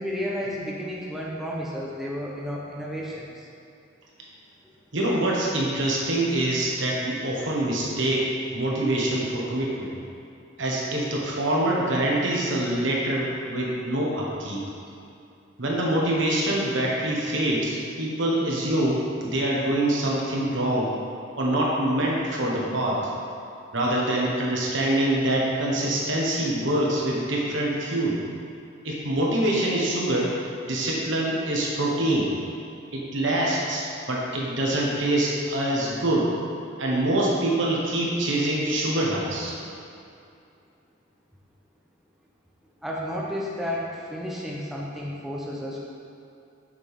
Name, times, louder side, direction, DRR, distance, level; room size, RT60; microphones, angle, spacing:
voice 1, 0.0-3.5 42.8-45.9, equal, ahead, -5 dB, 0.7 m, -32 dB
voice 2, 4.9-9.9 10.6-14.6 15.6-20.9 21.4-23.0 23.7-28.2 28.8-30.3 30.6-32.3 32.9-36.3 36.8-39.7, right 1 dB, 65° right, -4 dB, 1.3 m, -25 dB
7.3 x 6.1 x 3.5 m, 2.6 s
head